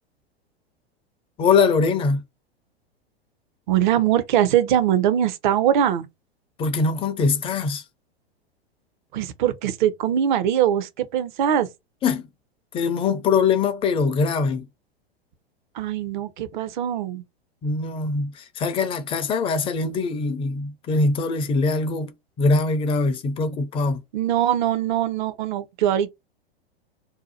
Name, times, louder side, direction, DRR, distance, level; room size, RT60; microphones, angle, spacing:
voice 1, 1.4-2.2 6.6-7.8 12.0-12.3 12.7-14.7 17.6-22.1 22.4-24.0, left 4 dB, 15° left, 0.5 m, -22 dB
voice 2, 3.7-6.1 9.1-11.7 15.7-17.2 24.1-26.1, right 10 dB, 50° right, 0.6 m, -22 dB
2.7 x 2.2 x 4.1 m
figure-of-eight pair, 95°, 32 cm